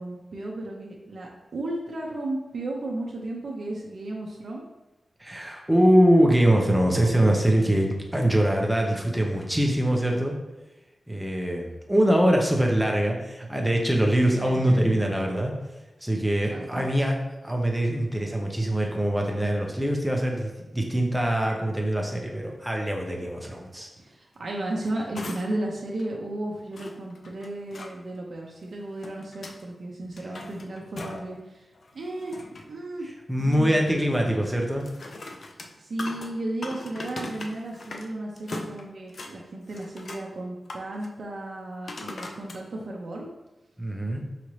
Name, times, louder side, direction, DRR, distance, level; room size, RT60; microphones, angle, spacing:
voice 1, 0.0-4.6 14.4-15.5 16.5-16.9 24.0-31.6 31.9-33.1 33.4-33.7 35.8-43.3, right 1 dB, 60° right, -2 dB, 0.5 m, -34 dB
voice 2, 5.2-10.3 11.1-15.5 16.0-17.1 17.4-23.9 33.3-34.9 43.8-44.2, right 1 dB, 5° right, 1 dB, 0.6 m, -23 dB
sound 1, 24.6-25.7 26.0-26.1 26.7-27.9 28.7-29.6 30.0-31.4 31.7-32.8 34.7-38.1 38.4-39.3 39.7-40.3 40.6-41.1 41.9-42.6 43.2-43.3, left 2 dB, 60° left, 0.4 m, -40 dB
4.8 x 2.7 x 3.1 m, 1.0 s
wide cardioid pair, 135°, 0 cm